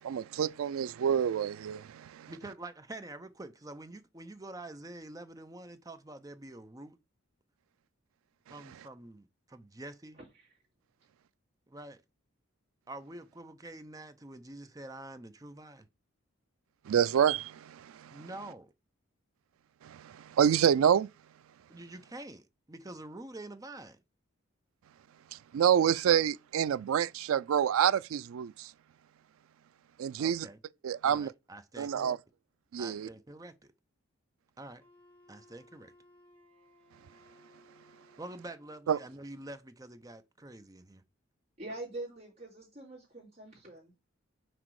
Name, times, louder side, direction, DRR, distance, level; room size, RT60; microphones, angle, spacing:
voice 1, 0.0-2.3 16.9-18.2 19.8-21.1 25.3-28.7 30.0-30.5 30.8-31.3 31.8-32.2 32.7-33.1 38.9-39.0, right 8 dB, 85° right, 0.3 m, -28 dB
voice 2, 2.3-7.0 8.5-10.2 11.7-12.0 12.9-15.9 18.1-18.7 21.7-24.0 30.2-30.6 31.0-32.2 32.8-33.7 34.6-34.8 35.3-35.9 38.2-41.0, right 2 dB, 15° right, 0.6 m, -46 dB
Wind instrument woodwind instrument, 34.8-38.9, left 1 dB, 10° left, 1.9 m, -62 dB
voice 3, 41.6-44.0, right 2 dB, 35° right, 3.3 m, -44 dB
6.0 x 4.4 x 4.7 m
head